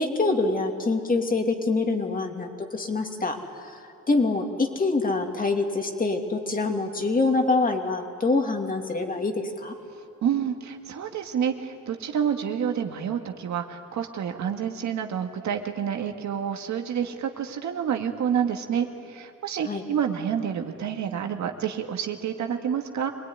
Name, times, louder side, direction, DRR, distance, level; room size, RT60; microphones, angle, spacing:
voice 1, 0.0-3.8 4.1-9.7 19.6-19.8, left 3 dB, 30° left, 3 dB, 2.8 m, -25 dB
voice 2, 10.2-23.1, right 8 dB, 70° right, 4 dB, 2.0 m, -28 dB
25.5 x 19.5 x 9.8 m, 2.5 s
cardioid pair, 90°, 30 cm